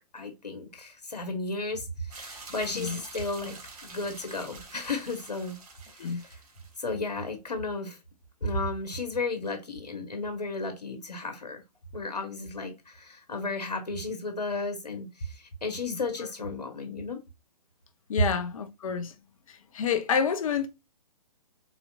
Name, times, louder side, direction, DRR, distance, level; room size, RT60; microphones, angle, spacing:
voice 1, 0.1-3.6 3.8-5.6 6.0-6.4 6.8-8.0 8.4-11.6 11.9-17.2, left 3 dB, 90° left, 1.2 m, -34 dB
sound 1, 2.1-6.9, right 3 dB, 65° right, 1.6 m, -46 dB
voice 2, 15.9-16.3 18.1-19.1 19.5-20.7, left 6 dB, 55° left, 0.7 m, -29 dB
4.0 x 2.9 x 2.4 m
hypercardioid pair, 135°, 20 cm